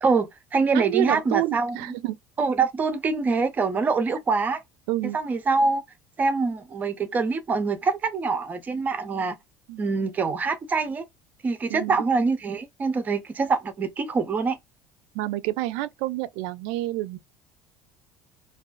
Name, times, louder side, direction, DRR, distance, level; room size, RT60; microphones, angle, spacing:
voice 1, 0.0-1.8 2.4-4.6 5.1-5.8 6.2-9.4 9.8-11.0 11.4-14.6, right 4 dB, 20° right, 0.4 m, -24 dB
voice 2, 0.7-2.2 4.9-5.2 9.7-9.8 11.7-12.0 15.1-17.2, right 17 dB, 80° right, 0.4 m, -28 dB
2.4 x 2.3 x 2.2 m
cardioid pair, 170°, 8 cm